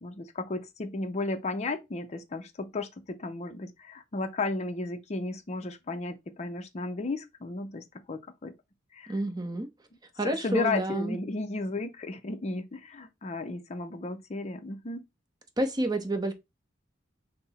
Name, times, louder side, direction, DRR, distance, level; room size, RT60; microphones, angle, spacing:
voice 1, 0.0-8.5 8.9-9.2 10.2-15.0, left 3 dB, 35° left, 0.5 m, -34 dB
voice 2, 9.1-9.7 10.2-11.2 15.6-16.3, right 1 dB, 20° right, 0.6 m, -29 dB
5.8 x 2.0 x 4.0 m
head